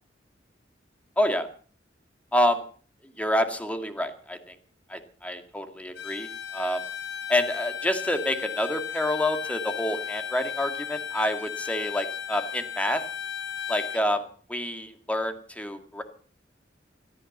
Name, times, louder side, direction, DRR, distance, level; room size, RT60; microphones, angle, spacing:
voice 1, 1.2-1.5 2.3-2.6 3.2-4.5 4.9-6.8 7.3-13.0 13.7-14.2 14.5-16.0, left 1 dB, 10° left, 7 dB, 2.0 m, -28 dB
Bowed string instrument, 5.9-14.1, left 8 dB, 90° left, 2.7 m, -35 dB
17.0 x 14.0 x 5.4 m, 0.42 s
head